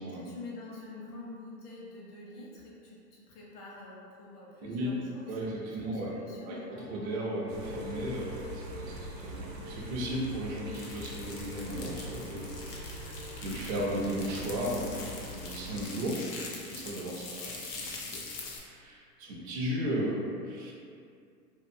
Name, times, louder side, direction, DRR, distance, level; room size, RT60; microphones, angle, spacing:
voice 1, 0.2-3.0 3.3-6.7, left 2 dB, 70° left, -4 dB, 1.0 m, -46 dB
voice 2, 4.6-6.2 6.5-13.0 13.4-16.2 16.7-18.2 18.5-20.7, equal, 25° right, -4 dB, 0.4 m, -35 dB
sound 1, 6.7-14.4, left 5 dB, 85° left, 0.7 m, -48 dB
sound 2, 7.5-15.8, right 1 dB, 85° right, 0.7 m, -43 dB
sound 3, 10.7-18.6, left 3 dB, 35° left, 0.4 m, -43 dB
2.8 x 2.5 x 2.5 m, 2.3 s
hypercardioid pair, 110°, 49 cm